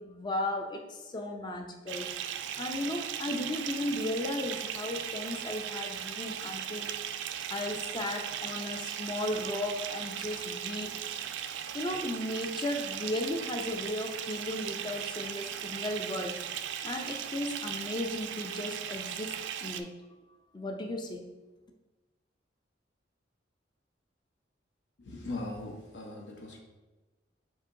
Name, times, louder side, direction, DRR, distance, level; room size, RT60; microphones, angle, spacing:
voice 1, 0.0-2.1 2.6-6.9 7.5-11.0 11.7-19.3 19.6-19.9 20.5-21.3, left 1 dB, 25° left, 3 dB, 0.4 m, -35 dB
Bathtub (filling or washing) / Fill (with liquid), 1.9-19.8, right 9 dB, 75° right, 0.3 m, -38 dB
voice 2, 25.0-26.6, left 2 dB, 70° left, 0 dB, 0.8 m, -39 dB
7.2 x 2.9 x 2.5 m, 1.2 s
head